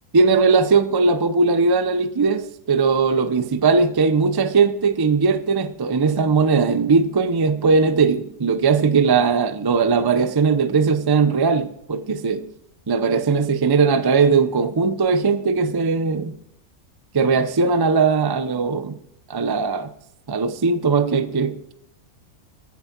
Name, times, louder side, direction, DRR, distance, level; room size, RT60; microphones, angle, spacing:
voice 1, 0.1-12.5 12.9-16.4 17.1-18.9 19.3-19.9 20.3-21.7, right 4 dB, 30° right, 0.4 m, -19 dB
14.5 x 11.0 x 4.5 m
omnidirectional pair, 1.5 m